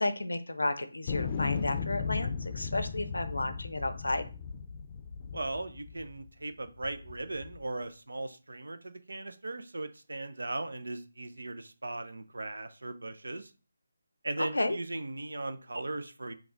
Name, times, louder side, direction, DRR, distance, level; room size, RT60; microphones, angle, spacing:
voice 1, 0.0-4.3 14.4-14.8, left 2 dB, 85° left, 10 dB, 0.7 m, -32 dB
sound 1, 1.1-6.3 6.8-7.6, left 6 dB, 35° left, 0.5 m, -36 dB
voice 2, 5.3-13.5 14.2-16.3, right 2 dB, 80° right, 10 dB, 0.6 m, -38 dB
5.9 x 2.4 x 3.8 m, 0.34 s
figure-of-eight pair, 155°, 0 cm